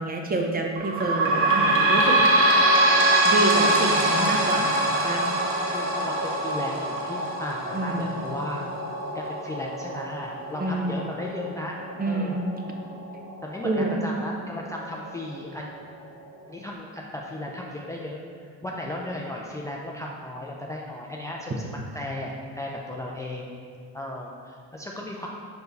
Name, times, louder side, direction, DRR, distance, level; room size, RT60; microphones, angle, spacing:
voice 1, 0.0-2.2 3.2-5.3 7.7-8.2 10.6-11.1 12.0-12.4 13.6-14.2, right 2 dB, 30° right, 1 dB, 0.8 m, -27 dB
sound 1, 0.8-13.9 14.5-14.6 14.9-15.0 15.8-15.9, right 1 dB, 45° right, 1.1 m, -24 dB
voice 2, 4.0-4.5 5.7-8.7 9.1-11.7 12.1-12.4 13.4-15.7 16.5-18.2 18.6-23.4 23.9-25.3, left 1 dB, 10° left, -2 dB, 0.4 m, -35 dB
5.3 x 4.6 x 4.0 m, 2.1 s
cardioid pair, 110°, 30 cm